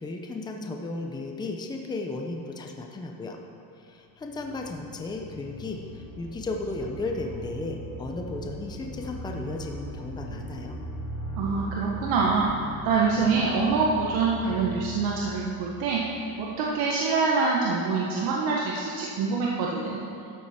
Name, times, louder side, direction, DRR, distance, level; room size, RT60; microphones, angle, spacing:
voice 1, 0.0-3.4 3.8-10.8, left 2 dB, 10° left, 2 dB, 0.6 m, -35 dB
sound 1, 3.9-16.8, right 1 dB, 35° left, 2.6 m, -39 dB
voice 2, 11.4-20.0, right 4 dB, 70° right, -3 dB, 1.3 m, -25 dB
12.5 x 7.7 x 4.3 m, 2.7 s
cardioid pair, 170°, 38 cm